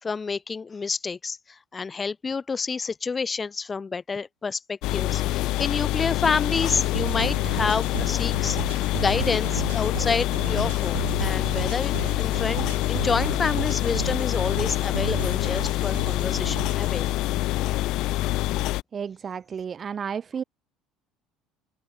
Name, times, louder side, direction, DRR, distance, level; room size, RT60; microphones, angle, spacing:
voice 1, 0.0-8.6 9.0-17.1, left 5 dB, 25° left, 3.4 m, -29 dB
sound 1, 4.8-18.8, left 17 dB, 60° left, 4.5 m, -26 dB
sound 2, 6.7-17.1, right 14 dB, 80° right, 1.9 m, -35 dB
voice 2, 18.9-20.4, right 7 dB, 35° right, 2.6 m, -32 dB
open air
hypercardioid pair, 60°, 0 cm